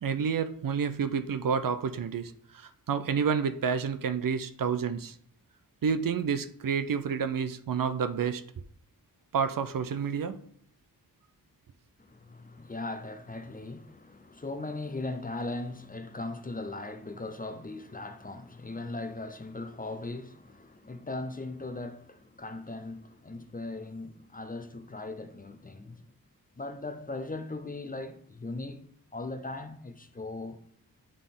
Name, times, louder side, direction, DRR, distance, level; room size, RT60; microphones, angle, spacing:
voice 1, 0.0-5.1 5.8-8.4 9.3-10.4, right 6 dB, 65° right, 0.6 m, -29 dB
voice 2, 12.0-26.1 26.6-28.9 29.1-30.6, left 2 dB, 25° left, 0.6 m, -39 dB
8.4 x 3.7 x 3.8 m
wide cardioid pair, 80°, 37 cm